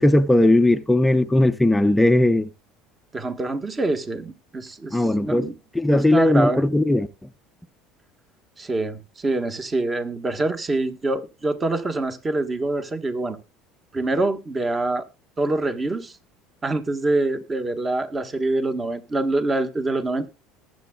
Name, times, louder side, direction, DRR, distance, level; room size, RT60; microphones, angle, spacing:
voice 1, 0.0-2.5 4.9-5.5 5.7-7.1, left 1 dB, 5° left, 0.6 m, -18 dB
voice 2, 3.1-5.5 5.9-6.6 8.6-13.4 13.9-15.0 15.4-16.2 16.6-20.3, right 2 dB, 20° right, 1.4 m, -25 dB
20.5 x 7.8 x 2.3 m
supercardioid pair, 110°, 0 cm